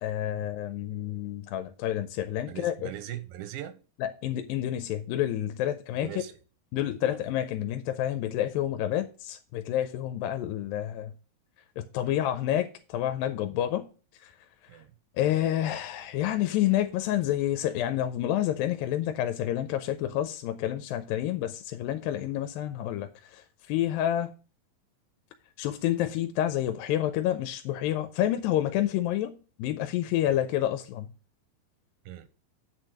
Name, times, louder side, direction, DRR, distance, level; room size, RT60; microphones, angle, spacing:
voice 1, 0.0-2.9 4.0-6.1 6.7-11.1 11.8-13.8 14.2-14.3 15.2-24.3 25.6-31.1, left 12 dB, 90° left, 2.4 m, -29 dB
voice 2, 2.5-3.8 6.0-6.4 7.0-7.2 12.0-12.2 14.7-14.9 32.1-32.3, right 12 dB, 90° right, 2.6 m, -40 dB
8.4 x 4.6 x 6.4 m
omnidirectional pair, 4.1 m